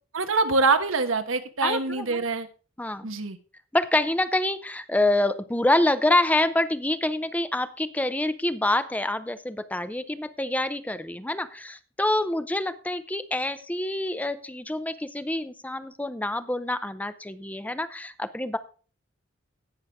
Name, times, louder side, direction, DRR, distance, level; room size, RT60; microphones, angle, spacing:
voice 1, 0.1-2.5 3.0-3.4, right 3 dB, 85° right, 8 dB, 1.3 m, -24 dB
voice 2, 1.6-2.2 2.8-3.1 3.7-18.6, left 1 dB, 5° left, 12 dB, 0.6 m, -26 dB
17.5 x 6.2 x 3.5 m, 0.36 s
head